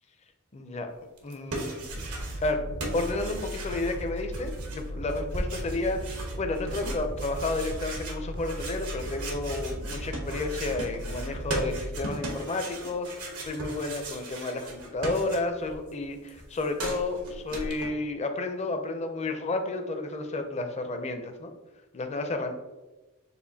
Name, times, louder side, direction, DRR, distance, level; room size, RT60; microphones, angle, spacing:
voice 1, 0.5-0.9 1.2-2.2 2.4-21.5 21.9-22.5, left 2 dB, 30° left, 6 dB, 0.5 m, -32 dB
sound 1, 1.2-2.5 2.8-15.8 16.0-17.9, right 2 dB, 85° right, 1.0 m, -37 dB
sound 2, 1.9-12.1, equal, 50° right, 0.5 m, -37 dB
6.7 x 2.5 x 2.7 m, 1.1 s
head